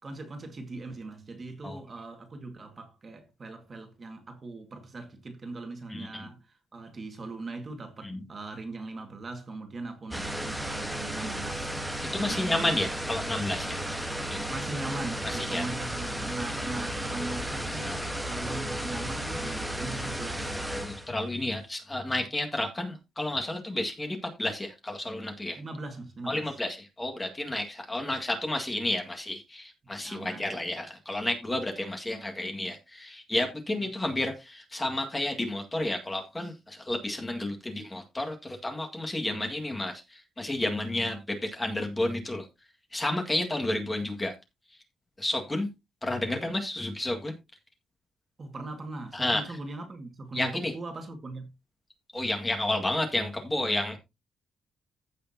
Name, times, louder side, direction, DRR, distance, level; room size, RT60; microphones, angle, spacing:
voice 1, 0.0-11.8 12.2-12.9 14.5-20.7 25.6-26.6 29.9-30.5 33.7-33.9 48.4-51.4, right 2 dB, 30° right, 1.9 m, -40 dB
voice 2, 5.9-6.3 8.0-8.2 12.1-13.8 14.2-14.4 15.2-15.6 17.8-18.0 20.7-25.6 26.3-42.5 42.9-44.3 45.2-45.7 46.0-47.3 49.1-49.4 50.3-50.7 52.1-54.0, left 1 dB, 15° left, 1.8 m, -31 dB
sound 1, 10.1-21.1, right 1 dB, 5° right, 1.3 m, -34 dB
15.0 x 6.5 x 2.8 m
cardioid pair, 170°, 0 cm